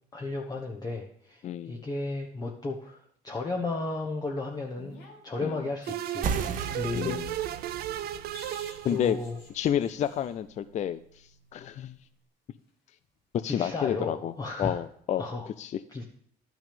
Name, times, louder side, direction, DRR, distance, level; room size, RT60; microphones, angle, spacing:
voice 1, 0.1-7.5 8.9-9.4 13.5-14.8 15.2-15.5 15.9-16.0, left 3 dB, 20° left, 1 dB, 1.0 m, -34 dB
voice 2, 1.4-1.8 5.4-5.6 6.9-7.3 8.8-9.2 9.5-12.0 13.3-14.3 14.6-15.2 15.6-15.7, left 10 dB, 45° left, 13 dB, 0.4 m, -30 dB
sound 1, 4.7-7.4 8.3-10.4 13.0-13.2, left 3 dB, 85° left, 2.6 m, -52 dB
sound 2, 5.9-9.5, right 12 dB, 65° right, 0.6 m, -35 dB
sound 3, 6.2-11.3, right 6 dB, 50° right, 1.1 m, -37 dB
11.0 x 6.1 x 5.1 m, 0.65 s
cardioid pair, 110°, 17 cm